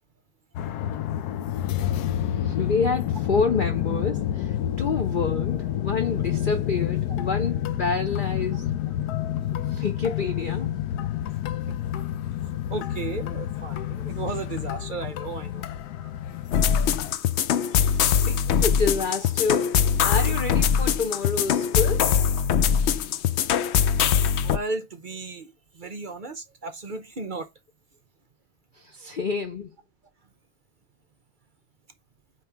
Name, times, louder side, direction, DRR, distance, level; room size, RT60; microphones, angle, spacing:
sound 1, 0.6-17.2, left 11 dB, 70° left, 1.1 m, -29 dB
voice 1, 2.4-8.8 9.5-10.7 18.2-19.7 20.0-22.2 28.7-29.7, left 4 dB, 45° left, 0.6 m, -28 dB
voice 2, 12.7-15.7 17.7-17.9 24.4-27.5, right 3 dB, 45° right, 0.6 m, -35 dB
sound 2, 16.5-24.6, left 8 dB, 90° left, 0.6 m, -22 dB
8.8 x 3.3 x 4.6 m
omnidirectional pair, 1.8 m